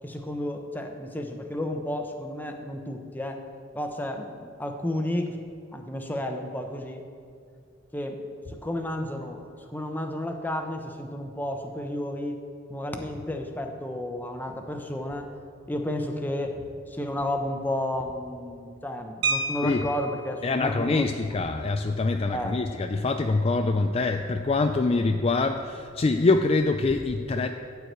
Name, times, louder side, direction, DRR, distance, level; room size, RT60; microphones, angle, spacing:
voice 1, 0.0-3.5 3.7-5.4 5.7-7.0 7.9-9.4 9.7-12.3 12.7-15.3 15.7-21.3 22.3-22.6, left 1 dB, 10° left, 4 dB, 0.9 m, -32 dB
sound 1, 19.2-20.3 21.7-21.9 22.2-22.4 22.8-23.1, right 3 dB, 65° right, 0.7 m, -30 dB
voice 2, 20.4-27.5, left 3 dB, 30° left, 6 dB, 0.4 m, -24 dB
13.5 x 4.7 x 8.1 m, 2.3 s
head